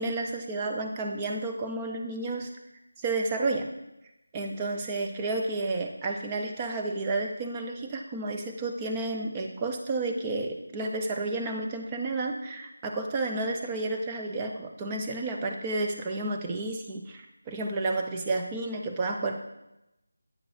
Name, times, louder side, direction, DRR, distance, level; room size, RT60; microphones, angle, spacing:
voice 1, 0.0-2.5 3.0-3.7 4.3-19.4, right 2 dB, 10° right, 2 dB, 0.4 m, -31 dB
8.4 x 5.0 x 3.2 m, 0.91 s
figure-of-eight pair, 175°, 0 cm